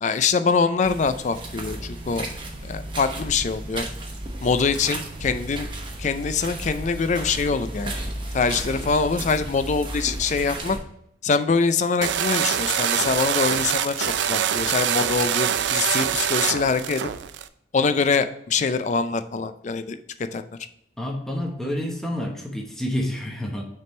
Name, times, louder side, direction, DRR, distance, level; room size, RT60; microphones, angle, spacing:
voice 1, 0.0-2.3 2.6-3.9 4.4-5.7 6.0-7.9 8.3-10.8 11.2-17.1 17.7-20.0 20.3-20.5, left 5 dB, 40° left, 11 dB, 0.4 m, -24 dB
sound 1, 0.8-10.8, right 1 dB, 25° right, 1.0 m, -34 dB
sound 2, 12.0-17.5, right 9 dB, 80° right, 0.4 m, -24 dB
voice 2, 21.0-23.6, left 1 dB, 5° left, -1 dB, 0.9 m, -28 dB
6.6 x 3.6 x 4.3 m, 0.75 s
head